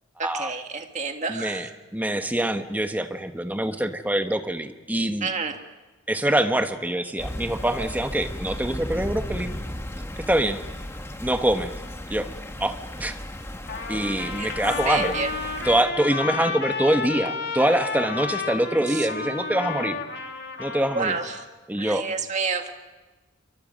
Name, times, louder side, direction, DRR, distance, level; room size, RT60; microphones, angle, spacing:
voice 1, 0.2-1.6 5.2-5.6 14.4-14.6 14.9-15.3 18.9-19.1 20.9-21.4 21.8-22.7, right 4 dB, 35° right, 5 dB, 1.8 m, -29 dB
voice 2, 1.3-5.3 6.1-9.5 10.3-10.6 11.2-11.7 12.1-12.3 12.6-13.2 13.9-15.2 15.6-20.0 20.6-21.2 21.7-22.1, right 1 dB, 10° right, 7 dB, 1.2 m, -24 dB
sound 1, 7.2-15.8, left 1 dB, 15° left, 1.2 m, -35 dB
Trumpet, 13.7-21.5, left 5 dB, 55° left, 2.4 m, -32 dB
27.5 x 23.5 x 5.3 m, 1.2 s
head